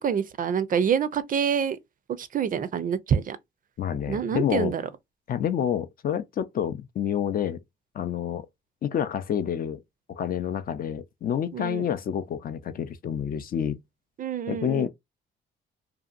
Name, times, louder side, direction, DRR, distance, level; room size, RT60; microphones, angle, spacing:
voice 1, 0.0-1.8 2.2-3.4 4.1-4.8 11.5-11.9 14.2-14.9, right 7 dB, 45° right, 0.4 m, -26 dB
voice 2, 3.8-4.7 5.3-7.6 7.9-8.5 8.8-9.8 10.1-13.8 14.5-14.9, left 9 dB, 50° left, 0.4 m, -28 dB
2.7 x 2.4 x 2.4 m
cardioid pair, 90°, 20 cm